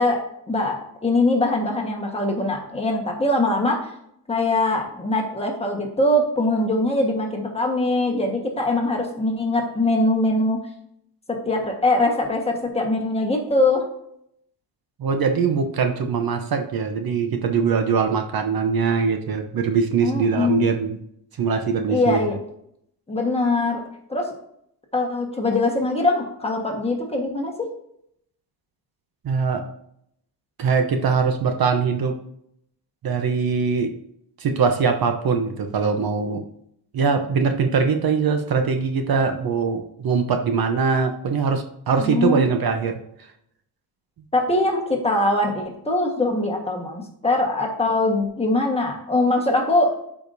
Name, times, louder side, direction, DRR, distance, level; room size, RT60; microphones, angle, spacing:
voice 1, 0.0-3.9 4.3-10.6 11.4-13.8 20.0-20.6 21.9-22.4 23.1-23.8 24.1-24.3 24.9-27.7 42.0-42.4 44.3-50.0, left 2 dB, 15° left, 1 dB, 1.4 m, -22 dB
voice 2, 15.0-21.0 21.4-22.2 29.2-29.6 30.6-32.2 33.0-34.0 34.4-36.4 36.9-43.0, right 5 dB, 60° right, 5 dB, 0.9 m, -22 dB
11.5 x 5.0 x 2.7 m, 0.73 s
wide cardioid pair, 135°, 40 cm